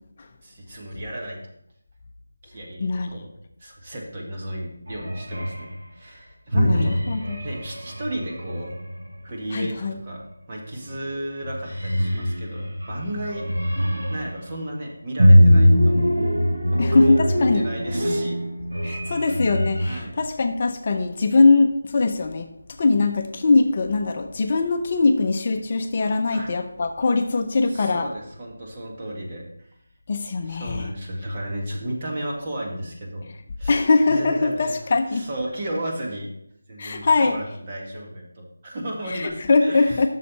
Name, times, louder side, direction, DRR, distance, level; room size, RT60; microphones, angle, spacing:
voice 1, 0.4-1.4 2.4-3.3 3.6-7.0 7.4-8.7 9.2-13.5 14.1-16.3 16.7-18.4 19.9-20.2 26.3-26.5 27.7-29.7 30.5-33.3 33.6-34.8 35.1-36.3 36.7-40.1, right 1 dB, 30° right, -1 dB, 1.8 m, -34 dB
sound 1, 4.9-5.7 6.5-9.2 10.8-11.1 11.4-14.4 15.2-20.0, equal, 65° right, 2.9 m, -21 dB
voice 2, 6.6-7.4 9.5-10.0 16.8-17.7 18.8-22.5 22.8-28.1 30.1-30.9 33.7-35.2 36.8-37.4 39.1-40.1, left 3 dB, 40° left, 6 dB, 0.6 m, -21 dB
8.4 x 6.6 x 4.1 m, 0.75 s
figure-of-eight pair, 165°, 0 cm